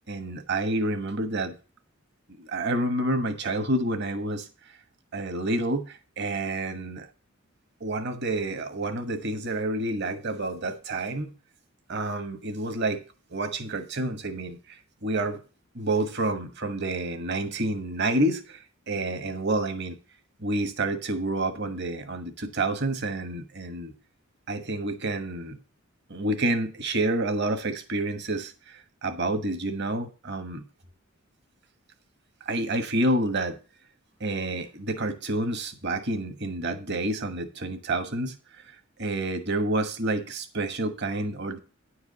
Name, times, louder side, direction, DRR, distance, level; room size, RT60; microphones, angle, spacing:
voice 1, 0.1-1.5 2.4-4.5 5.1-7.1 7.8-11.3 11.9-13.0 13.3-14.6 15.0-15.4 15.7-18.6 18.9-20.0 20.4-23.9 24.5-25.6 26.1-30.6 32.4-33.6 34.2-38.3 39.0-41.6, right 2 dB, 55° right, 8 dB, 1.3 m, -28 dB
10.0 x 4.7 x 6.7 m, 0.34 s
head